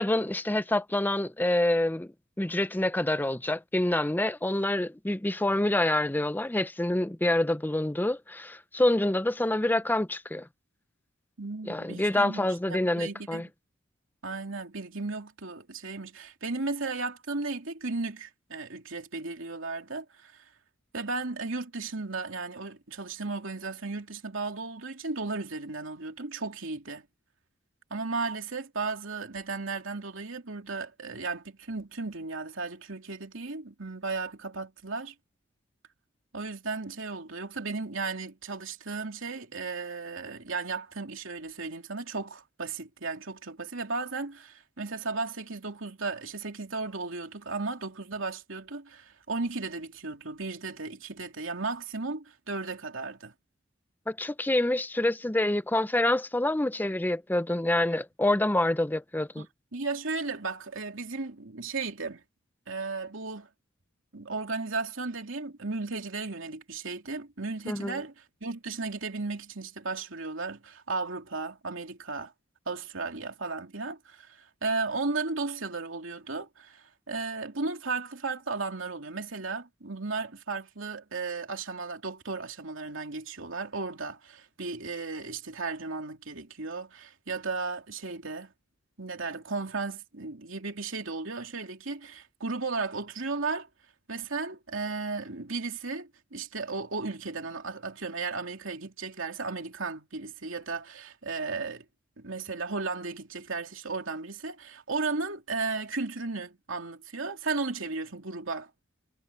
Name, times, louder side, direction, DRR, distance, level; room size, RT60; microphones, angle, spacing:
voice 1, 0.0-2.1 2.4-10.5 11.7-13.5 54.1-59.5 67.7-68.0, left 1 dB, 10° left, 0.5 m, -27 dB
voice 2, 11.4-13.5 14.2-20.4 20.9-27.0 27.9-35.1 36.3-53.3 59.4-59.5 59.7-62.2 62.7-63.5 64.1-72.3 72.7-88.5 89.0-93.7 94.1-101.8 102.2-108.7, right 3 dB, 75° right, 3.0 m, -35 dB
head